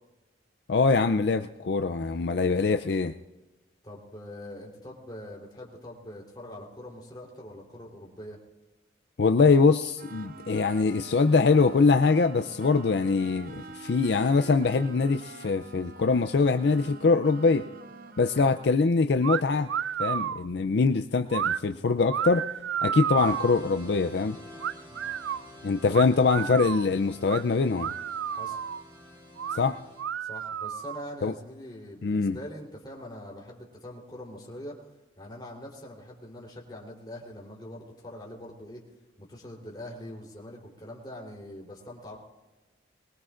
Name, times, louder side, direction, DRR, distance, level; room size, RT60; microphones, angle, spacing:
voice 1, 0.7-3.1 9.2-17.6 18.2-19.7 20.0-22.5 22.8-24.4 25.6-27.9 29.5-29.8 31.2-31.3 32.0-32.4, left 4 dB, 60° left, 8 dB, 0.4 m, -23 dB
voice 2, 3.8-8.4 18.4-18.5 24.9-25.1 25.9-26.0 28.3-28.6 30.2-34.7 35.2-38.8 39.2-42.2, left 1 dB, 25° left, -2 dB, 3.5 m, -43 dB
sound 1, 10.0-18.8, right 3 dB, 50° right, 0.6 m, -46 dB
sound 2, 19.2-19.4 19.7-20.4 21.3-21.6 22.1-23.6 24.6-25.4 25.9-26.9 27.3-27.4 27.8-28.8 29.4-29.6 30.0-31.1, right 8 dB, 85° right, 0.4 m, -31 dB
sound 3, 23.2-30.0, equal, 30° right, 4.0 m, -48 dB
23.0 x 20.5 x 2.5 m, 1.1 s
head